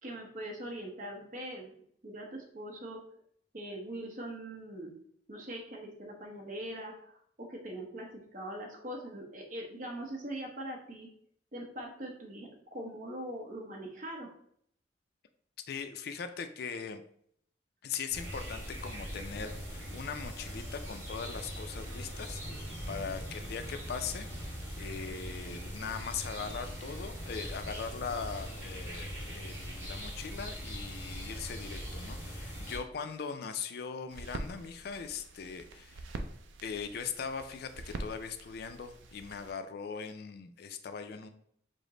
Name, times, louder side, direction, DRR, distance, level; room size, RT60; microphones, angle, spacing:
voice 1, 0.0-1.7 2.0-3.0 3.5-4.9 5.3-11.1 11.5-14.3, right 1 dB, 45° right, 0 dB, 0.8 m, -42 dB
voice 2, 15.7-17.0 17.8-36.1 36.6-41.3, left 6 dB, 55° left, 8 dB, 0.4 m, -40 dB
sound 1, 18.1-32.8, equal, 10° right, 1.6 m, -41 dB
sound 2, 34.1-39.5, right 2 dB, 85° right, 0.4 m, -44 dB
5.0 x 2.1 x 3.7 m, 0.66 s
head